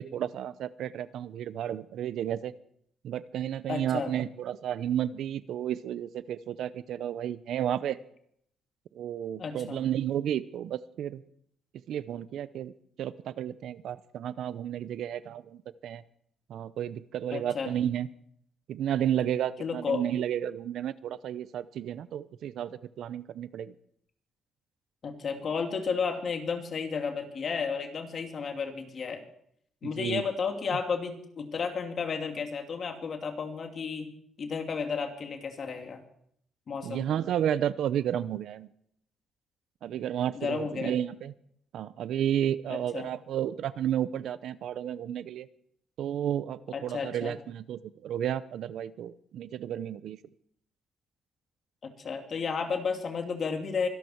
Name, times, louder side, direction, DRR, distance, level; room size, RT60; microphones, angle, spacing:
voice 1, 0.0-2.5 3.0-8.0 8.9-11.2 11.9-12.7 13.0-16.0 16.5-18.1 18.7-23.7 29.8-30.2 36.8-38.7 39.8-41.3 41.7-45.5 46.0-50.2, right 10 dB, 75° right, 16 dB, 0.7 m, -32 dB
voice 2, 3.7-4.1 9.4-9.8 17.3-17.7 19.6-20.0 25.0-29.2 29.8-34.1 34.4-36.0 36.7-37.1 40.3-40.9 42.7-43.1 46.7-47.3 51.8-53.9, left 5 dB, 50° left, 4 dB, 2.9 m, -32 dB
24.5 x 12.0 x 4.6 m, 0.68 s
cardioid pair, 90°, 0 cm